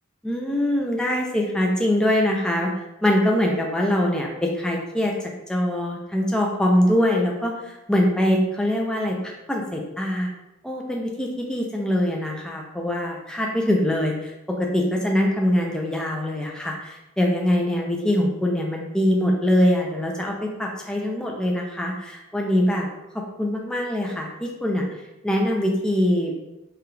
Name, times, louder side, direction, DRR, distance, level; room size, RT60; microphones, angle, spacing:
voice 1, 0.2-2.7 3.0-5.1 5.5-9.2 9.5-10.3 10.6-22.9 23.4-24.9 25.2-26.3, left 1 dB, 5° left, -1 dB, 0.4 m, -23 dB
4.8 x 2.3 x 3.1 m, 0.96 s
head